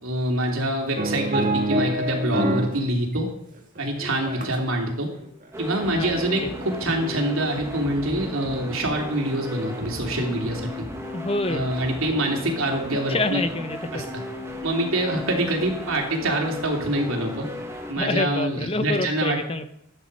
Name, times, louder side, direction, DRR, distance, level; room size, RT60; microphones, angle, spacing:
voice 1, 0.0-3.3 3.8-5.1 5.6-10.7 11.5-13.5 13.9-14.0 14.6-17.5 17.9-19.4, right 1 dB, 70° right, 1 dB, 3.0 m, -25 dB
sound 1, 1.0-2.8 3.1-4.7 5.2-5.4, right 1 dB, 40° right, 1.9 m, -26 dB
sound 2, 5.5-17.9, left 1 dB, 15° right, 1.9 m, -35 dB
voice 2, 5.9-6.3 11.1-11.7 13.1-14.1 18.0-19.7, left 2 dB, 25° left, 10 dB, 0.8 m, -27 dB
14.5 x 9.7 x 5.4 m, 0.72 s
head